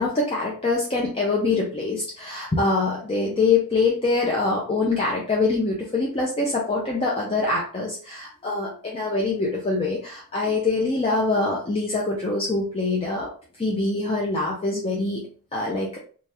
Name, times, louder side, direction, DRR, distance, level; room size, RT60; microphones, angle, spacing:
voice 1, 0.0-13.3 13.6-16.0, left 3 dB, 25° left, -2 dB, 0.5 m, -24 dB
3.3 x 2.3 x 2.7 m, 0.40 s
head